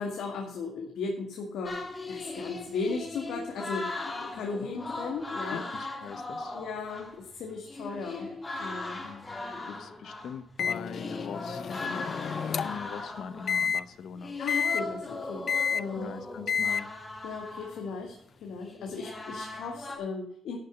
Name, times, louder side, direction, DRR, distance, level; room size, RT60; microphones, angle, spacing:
voice 1, 0.0-5.6 6.5-8.3 8.6-9.0 12.5-12.7 14.4-15.5 15.7-16.2 17.2-20.6, left 4 dB, 85° left, 1 dB, 2.1 m, -36 dB
sound 1, 1.6-7.2 7.5-20.0, left 2 dB, 20° left, 2.1 m, -39 dB
voice 2, 5.5-6.6 9.0-9.3 9.7-12.1 12.4-14.3 16.0-16.9, left 7 dB, 65° left, 12 dB, 0.9 m, -42 dB
Microwave oven, 10.6-12.9 13.5-13.8 14.5-14.8 15.5-15.8 16.5-16.8, left 6 dB, 45° left, 0.5 m, -29 dB
11.5 x 6.7 x 7.0 m, 0.65 s
wide cardioid pair, 160°, 0 cm